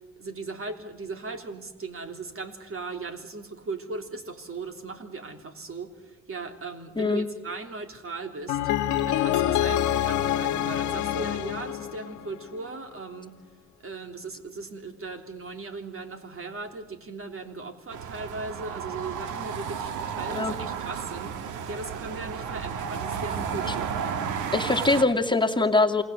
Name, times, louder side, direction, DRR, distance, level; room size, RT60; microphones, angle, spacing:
voice 1, 0.2-8.6 9.1-13.4 13.8-24.0, right 3 dB, 45° right, 6 dB, 3.5 m, -38 dB
voice 2, 7.0-7.3 20.3-20.5 23.7-23.8 24.5-26.0, left 3 dB, 15° left, 3 dB, 2.3 m, -23 dB
sound 1, 8.5-12.6, left 11 dB, 80° left, 1.3 m, -26 dB
sound 2, 17.9-25.0, right 7 dB, 85° right, 1.6 m, -32 dB
28.0 x 20.0 x 8.2 m, 1.2 s
supercardioid pair, 55°, 30 cm